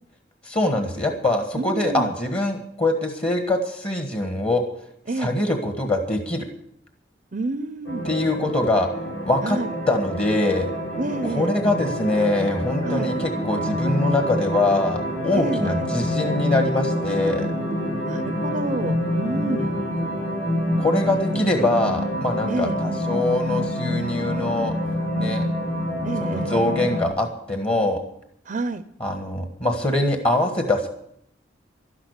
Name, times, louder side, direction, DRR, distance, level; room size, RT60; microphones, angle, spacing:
voice 1, 0.4-4.6 5.2-6.5 8.0-9.6 9.9-10.7 11.2-17.5 19.3-19.7 20.8-24.7 25.2-25.4 26.2-28.0 29.0-30.9, left 2 dB, 30° left, 5 dB, 1.5 m, -23 dB
voice 2, 1.6-2.1 5.1-5.3 7.3-8.1 9.4-9.7 11.0-11.5 12.8-13.1 15.3-15.8 18.1-19.7 22.5-22.8 26.0-26.5 28.5-28.8, right 2 dB, 45° right, 11 dB, 0.6 m, -28 dB
sound 1, 7.8-27.1, left 1 dB, 70° left, 5.5 m, -27 dB
12.0 x 11.5 x 8.1 m, 0.72 s
head